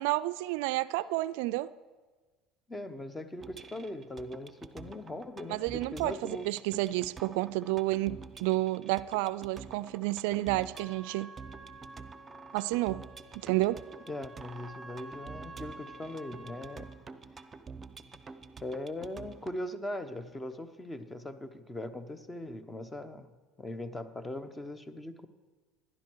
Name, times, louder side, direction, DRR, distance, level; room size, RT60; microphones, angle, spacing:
voice 1, 0.0-1.7 5.5-11.3 12.5-13.0 13.4-13.8, right 18 dB, 75° right, 15 dB, 0.3 m, -30 dB
voice 2, 2.7-6.5 14.1-16.9 18.1-18.2 18.6-23.3 23.6-25.3, left 1 dB, 15° left, 12 dB, 1.0 m, -40 dB
sound 1, 3.4-19.6, right 4 dB, 25° right, 0.7 m, -49 dB
Trumpet, 10.7-16.9, right 2 dB, 5° right, 1.9 m, -50 dB
16.5 x 11.0 x 4.7 m, 1.3 s
supercardioid pair, 95°, 0 cm